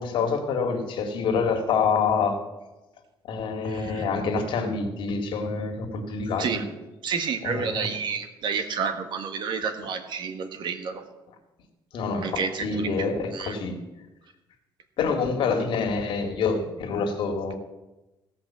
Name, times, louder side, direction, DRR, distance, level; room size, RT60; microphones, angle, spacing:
voice 1, 0.0-2.4 3.3-6.6 7.4-7.9 11.9-13.8 15.0-17.5, left 5 dB, 70° left, 3 dB, 2.2 m, -26 dB
voice 2, 3.7-4.0 6.4-6.6 7.0-11.0 12.2-13.5, right 6 dB, 60° right, 7 dB, 1.5 m, -30 dB
16.0 x 5.9 x 7.4 m, 1.0 s
cardioid pair, 130°, 9 cm